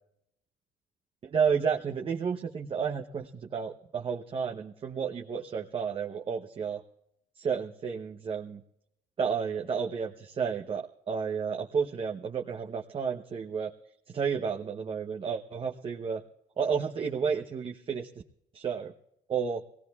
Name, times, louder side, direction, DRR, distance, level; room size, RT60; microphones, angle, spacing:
voice 1, 1.2-6.8 7.4-8.6 9.2-13.7 14.1-16.2 16.6-18.1 18.5-18.9 19.3-19.6, right 6 dB, 40° right, 3 dB, 0.9 m, -31 dB
22.0 x 18.0 x 2.4 m, 0.78 s
cardioid pair, 90°, 14 cm